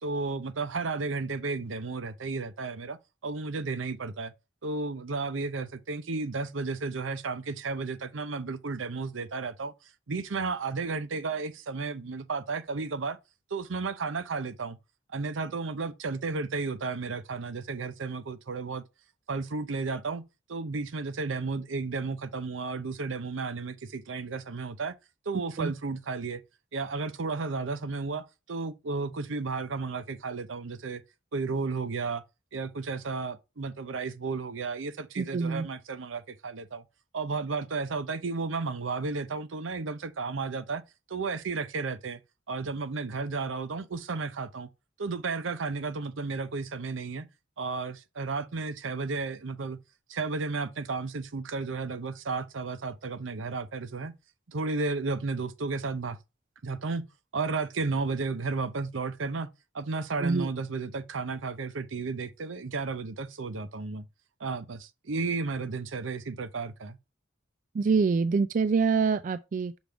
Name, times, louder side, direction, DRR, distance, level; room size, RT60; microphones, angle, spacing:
voice 1, 0.0-3.0 3.2-4.3 4.6-9.7 10.1-13.2 13.5-14.8 15.1-18.8 19.3-20.2 20.5-24.9 25.3-26.4 26.7-31.0 31.3-32.2 32.5-36.8 37.1-40.8 41.1-42.2 42.5-44.7 45.0-47.3 47.6-49.8 50.1-54.1 54.5-56.2 56.6-57.0 57.3-64.0 64.4-67.0, right 4 dB, 80° right, 0.7 m, -33 dB
voice 2, 35.2-35.7 60.2-60.5 67.7-69.8, right 5 dB, 40° right, 0.3 m, -25 dB
6.1 x 3.5 x 5.0 m
head